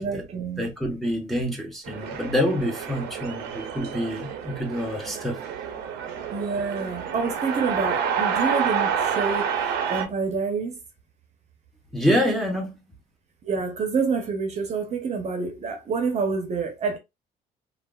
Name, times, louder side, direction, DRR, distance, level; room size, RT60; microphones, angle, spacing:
voice 1, 0.0-0.7 6.3-10.8 13.4-17.0, right 5 dB, 40° right, 0.8 m, -27 dB
voice 2, 0.6-5.4 11.9-12.7, equal, ahead, 0.9 m, -26 dB
sound 1, 1.8-10.0, right 7 dB, 85° right, 0.7 m, -28 dB
3.3 x 2.4 x 2.3 m
cardioid pair, 110°, 17 cm